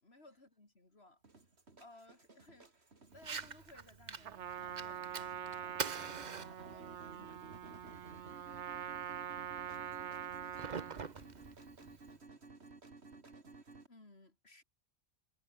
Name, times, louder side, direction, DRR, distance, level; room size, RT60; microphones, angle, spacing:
voice 1, 0.0-1.2 1.8-2.8 3.1-7.5 13.9-14.6, left 2 dB, 60° left, 4.0 m, -60 dB
sound 1, 1.2-13.9, right 3 dB, 65° right, 3.1 m, -56 dB
Fire, 3.1-12.1, right 5 dB, 40° right, 1.1 m, -47 dB
Trumpet, 4.2-11.1, right 9 dB, 80° right, 1.1 m, -44 dB
voice 2, 9.8-10.2 10.6-12.5, equal, 15° left, 3.5 m, -71 dB
omnidirectional pair, 1.2 m